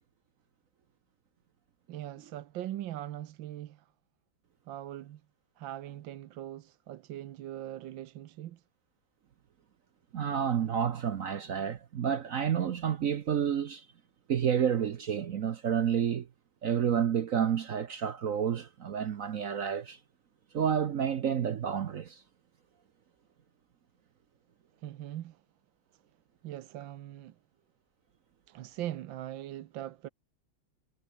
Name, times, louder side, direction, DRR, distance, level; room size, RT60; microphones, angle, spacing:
voice 1, 1.9-3.9 4.7-5.2 5.6-8.6 24.8-25.4 25.9-26.0 26.4-27.4 28.5-30.1, right 13 dB, 75° right, 1.5 m, -41 dB
voice 2, 10.1-13.9 14.3-16.3 16.6-20.0 20.5-22.2, right 8 dB, 55° right, 1.0 m, -30 dB
omnidirectional pair, 2.2 m